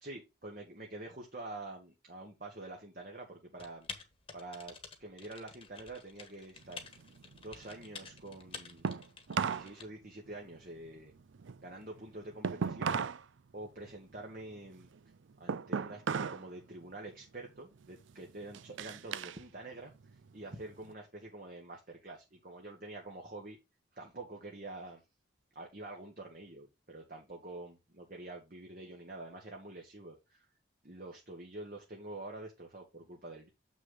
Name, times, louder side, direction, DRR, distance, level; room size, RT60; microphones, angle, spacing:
voice 1, 0.0-3.9 4.3-4.7 5.0-6.8 7.3-8.8 9.3-11.1 11.6-13.0 13.5-14.9 15.4-23.6 23.9-25.0 25.5-30.5 30.8-33.5, right 2 dB, 45° right, 1 dB, 1.4 m, -47 dB
Typing, 3.6-9.8, left 5 dB, 30° left, 1.4 m, -49 dB
sound 1, 6.6-9.7 10.0-13.2 13.6-16.5 16.8-17.2 17.8-19.4 19.8-20.9, right 6 dB, 80° right, 0.5 m, -38 dB
7.8 x 6.1 x 3.8 m, 0.24 s
head